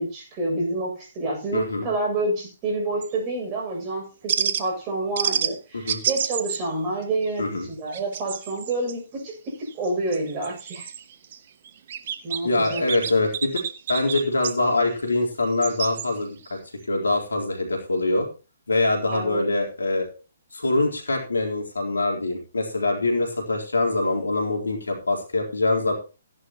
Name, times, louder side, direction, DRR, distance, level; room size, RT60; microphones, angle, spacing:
voice 1, 0.0-10.9 12.2-12.8 19.1-19.5, right 2 dB, 30° right, 1 dB, 7.4 m, -28 dB
voice 2, 1.5-1.9 5.7-6.0 7.4-7.7 12.4-13.6 13.9-16.6 16.9-18.3 18.7-20.1 20.5-25.9, left 2 dB, 80° left, 2 dB, 3.8 m, -24 dB
sound 1, 3.0-3.2 4.3-4.6 5.2-5.5 5.9-6.7 7.0-7.3 7.6-8.9 9.7-11.4 11.6-12.4 12.7-14.6 15.4-16.1 16.4-16.5, right 9 dB, 50° right, 1.1 m, -29 dB
16.0 x 10.5 x 3.0 m, 0.33 s
figure-of-eight pair, 130°, 0 cm